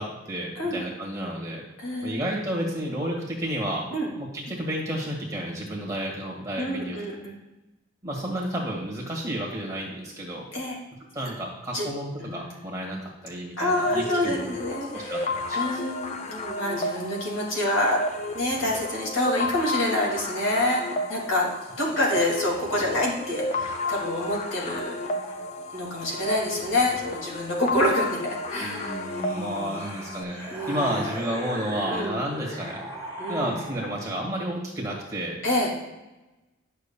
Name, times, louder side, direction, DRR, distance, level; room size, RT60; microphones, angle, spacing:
voice 1, 0.0-1.6 2.0-3.8 4.2-7.0 8.0-10.5 11.1-14.4 14.9-15.6 28.6-30.4 30.7-32.9 33.3-35.4, right 1 dB, 15° right, -2 dB, 1.7 m, -31 dB
voice 2, 1.8-2.2 3.9-4.1 6.6-7.3 10.5-10.8 11.7-11.9 12.2-12.5 13.6-18.0 18.3-21.5 21.8-25.4 25.7-29.9 30.5-31.1 31.9-32.2 33.2-33.6 35.4-35.7, left 1 dB, 75° left, -3 dB, 2.3 m, -27 dB
sound 1, 13.7-30.2, left 2 dB, 35° left, 0.5 m, -32 dB
sound 2, 28.4-34.2, equal, 15° left, 2.3 m, -37 dB
10.5 x 6.5 x 2.3 m, 1.0 s
head